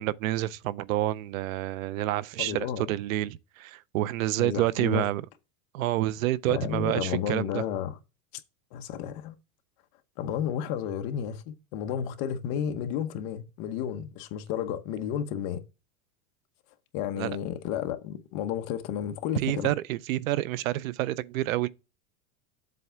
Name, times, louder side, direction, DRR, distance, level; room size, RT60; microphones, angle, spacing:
voice 1, 0.0-5.2 5.7-7.6 17.2-17.3 19.4-21.7, right 15 dB, 80° right, 0.6 m, -28 dB
voice 2, 2.4-2.9 4.4-5.1 6.5-8.0 8.7-9.3 10.2-15.6 16.9-19.7, left 9 dB, 40° left, 0.9 m, -32 dB
7.7 x 3.3 x 5.8 m
supercardioid pair, 165°, 40 cm